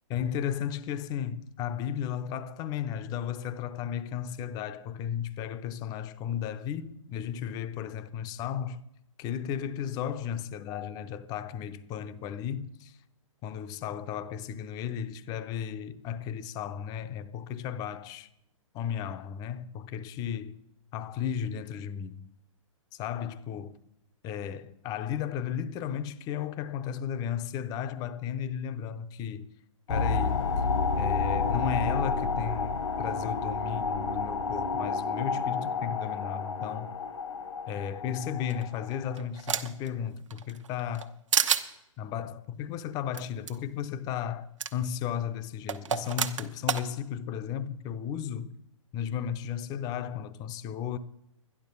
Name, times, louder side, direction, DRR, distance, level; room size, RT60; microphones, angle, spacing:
voice 1, 0.1-8.8 9.2-13.0 13.4-18.3 18.7-20.6 20.9-22.2 22.9-23.8 24.2-29.5 29.9-30.4 31.0-36.9 37.7-41.1 42.0-48.5 48.9-51.0, left 9 dB, 25° left, 0.6 m, -34 dB
sound 1, 29.9-39.1, left 4 dB, 65° left, 1.2 m, -30 dB
sound 2, 38.5-39.9 40.3-41.1 41.3-41.7 43.1-43.2 43.5-43.6 44.6-44.7 45.7-46.8, right 7 dB, 65° right, 1.0 m, -29 dB
12.0 x 11.0 x 5.4 m
figure-of-eight pair, 120°, 17 cm